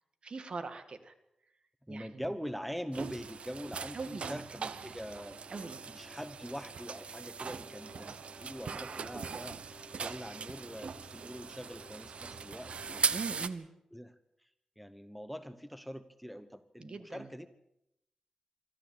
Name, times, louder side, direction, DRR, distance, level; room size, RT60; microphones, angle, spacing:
voice 1, 0.2-1.1 1.9-2.3 3.9-4.4 5.5-5.8 13.1-13.7 16.8-17.3, right 4 dB, 55° right, 10 dB, 2.1 m, -41 dB
voice 2, 1.9-13.1 13.9-14.1 14.4-14.5 14.8-17.5, equal, ahead, 12 dB, 1.0 m, -43 dB
sound 1, 2.9-13.5, right 5 dB, 70° right, 1.0 m, -40 dB
sound 2, 5.1-13.1, left 2 dB, 20° left, 1.9 m, -59 dB
24.5 x 14.0 x 8.8 m, 0.82 s
wide cardioid pair, 115°, 2 cm